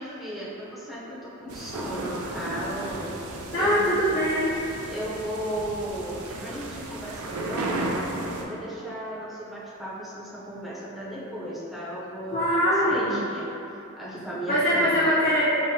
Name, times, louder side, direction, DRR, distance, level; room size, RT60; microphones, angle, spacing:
voice 1, 0.0-4.0 4.9-8.1 8.4-13.5 14.0-15.1, equal, ahead, -9 dB, 0.5 m, -35 dB
sound 1, 1.5-8.4, right 2 dB, 75° right, 0.4 m, -34 dB
voice 2, 3.5-4.5 12.3-13.1 14.5-15.5, equal, 45° left, -10 dB, 0.6 m, -22 dB
5.3 x 2.0 x 2.7 m, 2.8 s
head